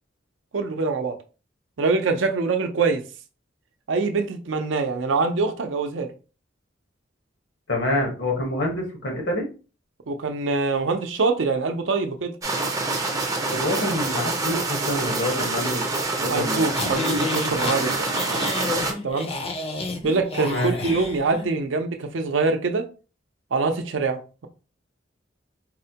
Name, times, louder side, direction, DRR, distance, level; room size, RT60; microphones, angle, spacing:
voice 1, 0.5-1.2 1.8-3.0 3.9-6.1 10.1-12.3 16.3-18.5 19.0-19.3 20.0-22.8 23.5-24.5, right 4 dB, 80° right, 0.5 m, -24 dB
voice 2, 7.7-9.4 13.5-15.8 16.2-16.7 20.5-21.0, left 1 dB, 70° left, 1.1 m, -26 dB
sound 1, 12.4-18.9, right 3 dB, 20° right, 0.5 m, -26 dB
sound 2, 16.7-21.4, left 2 dB, 30° left, 0.5 m, -30 dB
4.1 x 2.1 x 2.8 m
head